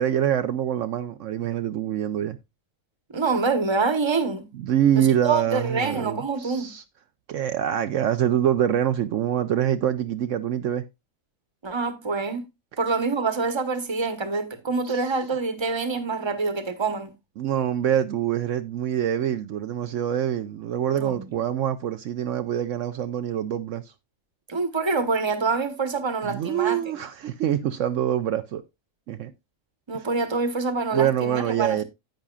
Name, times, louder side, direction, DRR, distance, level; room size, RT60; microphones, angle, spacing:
voice 1, 0.0-2.4 4.5-6.8 7.3-10.9 14.8-15.1 17.4-23.9 26.2-28.6 29.1-29.3 29.9-30.1 30.9-31.8, right 10 dB, 70° right, 1.0 m, -25 dB
voice 2, 3.1-4.5 5.0-6.7 11.6-12.4 12.8-17.1 20.9-21.3 24.5-26.8 29.9-31.8, right 4 dB, 20° right, 1.1 m, -26 dB
10.5 x 8.6 x 2.4 m
omnidirectional pair, 1.4 m